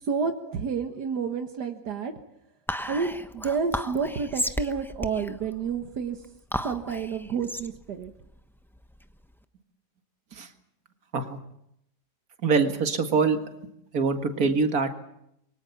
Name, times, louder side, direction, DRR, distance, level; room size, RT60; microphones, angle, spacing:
voice 1, 0.1-2.1 2.9-6.2 6.6-8.1, right 5 dB, 80° right, 6 dB, 2.0 m, -30 dB
Whispering, 2.7-9.3, equal, ahead, 0.8 m, -34 dB
voice 2, 12.4-13.4 13.9-14.9, right 4 dB, 60° right, 7 dB, 2.4 m, -24 dB
26.0 x 23.5 x 7.1 m, 0.78 s
omnidirectional pair, 1.7 m